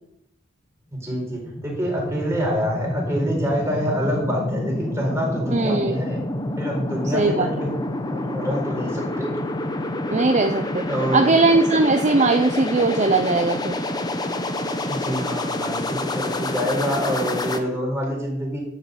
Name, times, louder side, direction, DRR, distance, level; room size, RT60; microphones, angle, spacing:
voice 1, 0.9-6.2 6.6-9.3 10.9-11.3 14.9-18.6, equal, 15° right, -2 dB, 4.8 m, -27 dB
sound 1, 1.0-17.6, left 1 dB, 20° left, 1.0 m, -28 dB
voice 2, 5.5-5.9 7.1-7.5 10.1-10.8 11.1-13.7, right 3 dB, 35° right, 7 dB, 0.7 m, -19 dB
12.0 x 6.9 x 8.0 m, 0.78 s
head